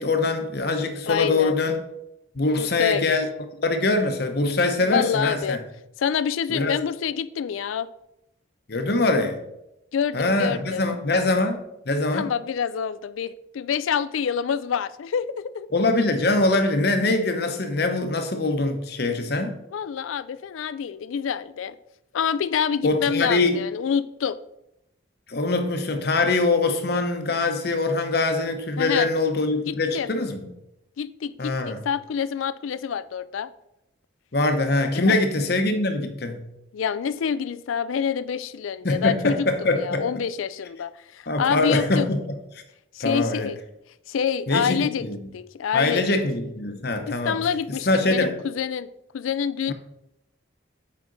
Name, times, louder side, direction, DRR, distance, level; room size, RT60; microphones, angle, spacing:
voice 1, 0.0-1.8 2.3-3.3 3.6-5.6 6.5-6.8 8.7-9.4 10.1-11.6 11.9-12.3 15.7-19.6 22.8-23.6 25.3-30.5 31.4-31.8 34.3-36.5 38.8-40.1 41.3-42.4 43.0-43.5 44.5-45.2 45.7-47.4 47.7-48.4 49.7-49.8, left 2 dB, 50° left, 0.8 m, -23 dB
voice 2, 1.1-1.5 2.6-3.2 4.8-5.6 6.0-7.9 9.9-10.8 12.1-15.7 19.7-21.8 22.1-24.4 28.8-29.1 29.7-30.1 31.0-33.5 34.9-35.3 36.7-42.1 42.9-43.6 44.1-45.1 45.3-46.2 47.1-48.9 49.1-49.7, left 7 dB, 80° left, 0.4 m, -27 dB
7.6 x 5.0 x 4.0 m
head